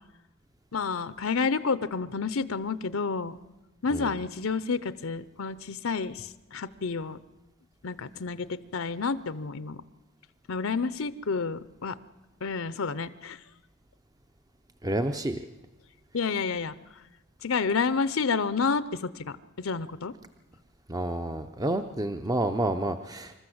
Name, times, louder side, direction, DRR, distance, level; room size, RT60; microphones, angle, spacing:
voice 1, 0.7-3.4 3.8-7.2 7.8-9.8 10.5-12.0 12.4-13.4 16.1-16.7 17.4-20.1, left 5 dB, 70° left, 15 dB, 0.7 m, -30 dB
voice 2, 14.8-15.4 20.9-23.3, right 1 dB, 15° right, 8 dB, 0.6 m, -29 dB
26.5 x 13.5 x 7.9 m, 1.1 s
head